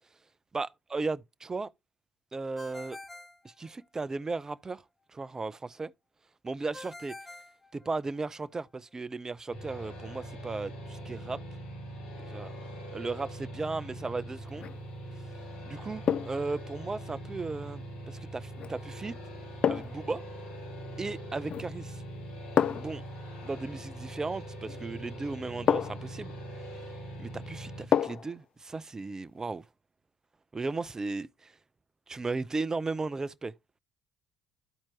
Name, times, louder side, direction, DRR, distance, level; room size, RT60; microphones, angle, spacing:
voice 1, 0.5-1.7 2.3-3.0 3.4-4.8 5.1-5.9 6.4-7.2 7.7-11.4 12.2-12.5 12.9-14.7 15.7-19.2 19.7-20.2 21.0-21.8 22.7-23.0 23.4-26.3 27.2-29.6 30.5-31.5 32.1-33.5, right 3 dB, 25° right, 0.5 m, -36 dB
Ringtone, 2.6-4.2 6.7-8.4, left 2 dB, 5° left, 1.4 m, -47 dB
sound 1, 9.5-27.9, right 1 dB, 70° left, 2.4 m, -42 dB
sound 2, 14.5-14.8 16.1-16.5 18.6-18.8 19.6-20.1 21.4-21.8 22.6-23.0 24.7-24.8 25.7-26.1 27.9-28.4 28.7-28.8, left 8 dB, 45° left, 0.4 m, -28 dB
13.0 x 4.3 x 2.8 m
hypercardioid pair, 55°, 3 cm